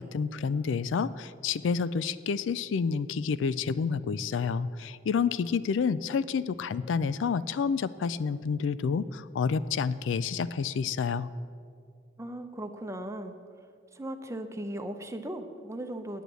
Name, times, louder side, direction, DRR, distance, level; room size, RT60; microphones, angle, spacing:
voice 1, 0.0-11.3, left 5 dB, 80° left, 17 dB, 0.4 m, -29 dB
voice 2, 12.2-13.4 13.9-16.2, right 1 dB, 15° right, 7 dB, 0.7 m, -37 dB
9.1 x 8.2 x 8.1 m, 2.3 s
head